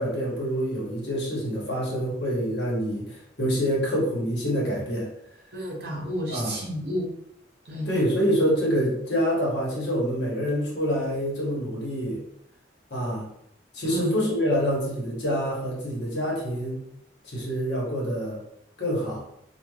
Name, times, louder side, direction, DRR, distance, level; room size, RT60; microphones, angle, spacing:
voice 1, 0.0-5.1 6.3-6.6 7.8-12.2 12.9-13.3 13.7-16.8 17.2-18.4 18.8-19.2, equal, 65° left, -4 dB, 1.0 m, -26 dB
voice 2, 5.5-7.1 7.7-7.9 13.8-14.1, equal, 55° right, -2 dB, 0.7 m, -31 dB
3.1 x 2.2 x 2.3 m, 0.75 s
head